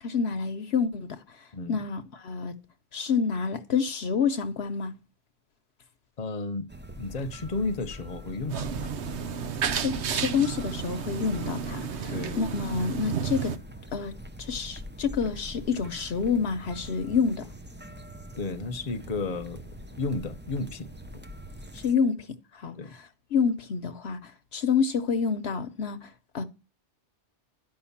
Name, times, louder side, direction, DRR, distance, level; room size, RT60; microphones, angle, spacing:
voice 1, 0.0-2.5 2.9-4.9 9.8-13.6 13.9-14.1 14.4-17.5 21.7-22.3 22.5-26.4, left 6 dB, 65° left, 1.0 m, -28 dB
voice 2, 6.2-6.7 7.0-8.9 12.1-12.4 18.3-19.6 19.9-20.9 21.1-21.2 22.7-22.9, left 3 dB, 35° left, 0.9 m, -33 dB
sound 1, 6.7-21.9, equal, 15° right, 0.5 m, -43 dB
sound 2, 8.5-13.6, right 7 dB, 70° right, 1.1 m, -32 dB
12.0 x 5.6 x 7.2 m
omnidirectional pair, 1.2 m